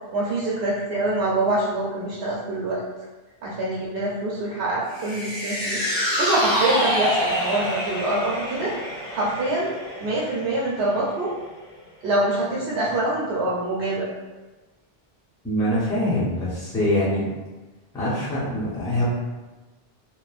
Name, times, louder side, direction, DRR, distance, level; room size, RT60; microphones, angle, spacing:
voice 1, 0.1-2.8 3.4-8.7 9.1-9.7 10.0-11.3 12.0-14.1, right 2 dB, 80° right, -6 dB, 0.8 m, -25 dB
sound 1, 4.9-11.4 11.7-11.8, equal, 40° left, 0.9 m, -27 dB
voice 2, 15.4-17.2 17.9-19.0, left 1 dB, 5° left, -9 dB, 0.6 m, -24 dB
3.0 x 2.1 x 2.4 m, 1.2 s
omnidirectional pair, 1.1 m